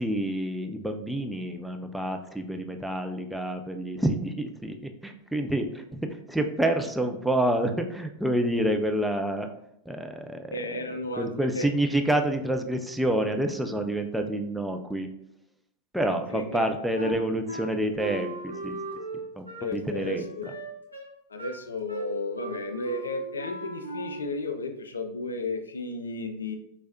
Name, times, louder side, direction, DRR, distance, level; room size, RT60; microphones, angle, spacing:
voice 1, 0.0-9.5 9.9-15.1 15.9-18.8 19.4-20.5, right 1 dB, 5° right, 4 dB, 0.4 m, -28 dB
voice 2, 10.5-11.7 16.1-17.1 19.6-20.5 21.3-26.6, left 2 dB, 70° left, 6 dB, 0.5 m, -34 dB
Wind instrument woodwind instrument, 16.9-24.4, right 2 dB, 90° right, 0.9 m, -38 dB
4.7 x 3.3 x 2.6 m, 0.77 s
figure-of-eight pair, 90°, 0 cm